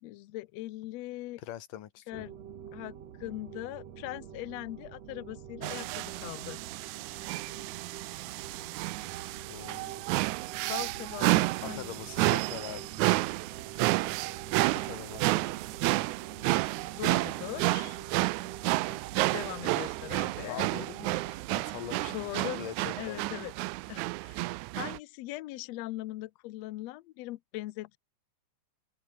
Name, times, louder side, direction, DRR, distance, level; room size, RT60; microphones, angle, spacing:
voice 1, 0.0-1.4 2.1-2.3 2.7-6.6 10.7-11.9 17.0-18.0 19.3-20.6 22.1-22.6 23.0-23.5 23.9-28.0, left 17 dB, 90° left, 1.4 m, -40 dB
voice 2, 1.4-2.3 9.5-10.0 11.6-12.9 14.7-15.5 20.5-22.2 22.6-23.2, left 11 dB, 70° left, 3.1 m, -43 dB
sound 1, 2.1-21.5, right 9 dB, 55° right, 2.7 m, -47 dB
sound 2, 5.6-25.0, right 20 dB, 90° right, 1.6 m, -31 dB
open air
omnidirectional pair, 4.0 m